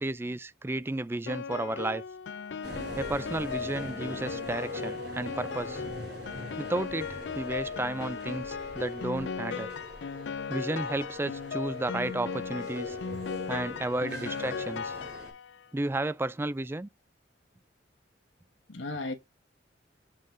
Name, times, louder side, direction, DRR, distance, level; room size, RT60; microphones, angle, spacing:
voice 1, 0.0-2.0 3.0-5.8 6.6-9.7 10.5-13.0 13.5-15.0 15.7-16.9, right 2 dB, 10° right, 0.3 m, -33 dB
Piano, 1.3-15.6, left 5 dB, 65° left, 0.4 m, -37 dB
sound 1, 2.6-15.3, left 1 dB, 50° right, 4.0 m, -42 dB
voice 2, 13.5-13.8 18.7-19.1, left 2 dB, 85° left, 1.2 m, -37 dB
7.4 x 3.7 x 3.8 m
head